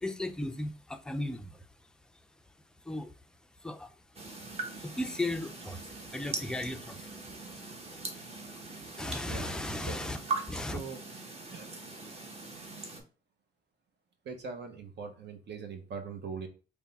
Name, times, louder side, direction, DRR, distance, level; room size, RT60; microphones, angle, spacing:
voice 1, 0.0-1.7 2.8-3.1 3.6-3.9 4.8-7.1 9.0-10.2 10.5-10.8, left 1 dB, 5° left, 0.4 m, -36 dB
sound 1, 4.1-13.0, right 3 dB, 30° right, 1.0 m, -41 dB
voice 2, 10.6-11.0 11.5-11.7 14.2-16.5, right 5 dB, 60° right, 0.9 m, -41 dB
3.4 x 2.2 x 4.0 m
cardioid pair, 90°, 20 cm